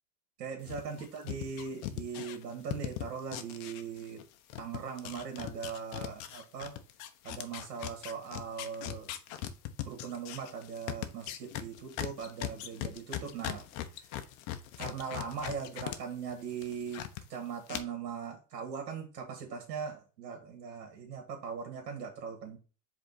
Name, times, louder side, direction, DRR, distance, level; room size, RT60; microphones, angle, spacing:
voice 1, 0.4-4.2 4.6-6.7 7.2-9.1 9.9-13.6 14.8-22.6, right 6 dB, 85° right, 2 dB, 2.2 m, -40 dB
sound 1, 0.7-4.2 4.5-16.0 16.3-17.2 17.7-17.8, left 13 dB, 55° left, 1.0 m, -39 dB
5.2 x 3.6 x 5.2 m, 0.34 s
supercardioid pair, 120°, 48 cm